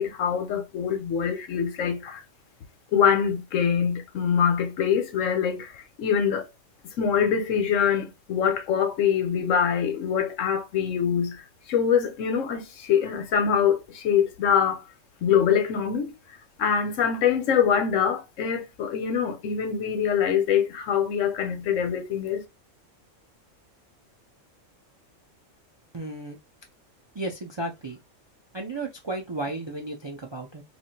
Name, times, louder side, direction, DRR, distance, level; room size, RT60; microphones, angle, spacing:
voice 1, 0.0-2.2 2.9-6.4 7.0-11.4 11.7-14.8 15.2-16.1 16.6-22.4, left 7 dB, 85° left, 1.1 m, -24 dB
voice 2, 25.9-26.4 27.2-28.0 28.5-30.6, right 2 dB, 45° right, 0.3 m, -33 dB
2.8 x 2.6 x 4.3 m
omnidirectional pair, 1.3 m